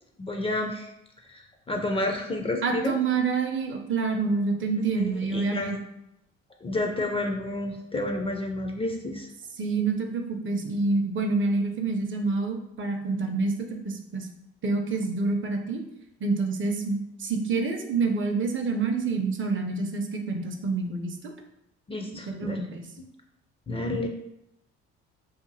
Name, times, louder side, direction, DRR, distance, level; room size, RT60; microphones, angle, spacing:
voice 1, 0.2-0.9 1.3-2.9 4.9-5.8 6.6-9.3 21.9-22.7 23.7-24.1, left 2 dB, 20° left, 2 dB, 0.4 m, -30 dB
voice 2, 2.6-5.8 9.6-14.3 14.6-15.8 16.2-21.3 22.3-22.8, right 4 dB, 40° right, 4 dB, 0.5 m, -27 dB
2.8 x 2.5 x 2.6 m, 0.84 s
hypercardioid pair, 60°, 31 cm